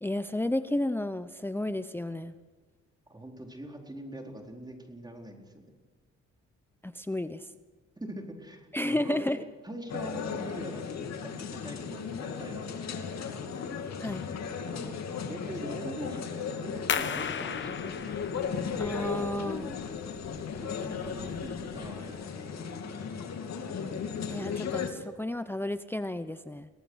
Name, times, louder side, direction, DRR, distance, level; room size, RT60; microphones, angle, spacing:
voice 1, 0.0-2.3 6.8-7.5 8.7-9.4 14.0-14.3 18.8-19.7 24.3-26.7, left 1 dB, 5° left, 11 dB, 0.8 m, -32 dB
voice 2, 3.1-5.6 8.0-9.2 9.6-13.6 14.6-15.0 15.3-18.2 20.6-23.1, right 1 dB, 15° right, 2 dB, 4.2 m, -43 dB
sound 1, 9.9-24.9, left 6 dB, 60° left, 2.9 m, -36 dB
sound 2, 16.9-22.2, left 7 dB, 40° left, 1.1 m, -37 dB
23.5 x 18.0 x 6.4 m, 1.3 s
cardioid pair, 90°, 30 cm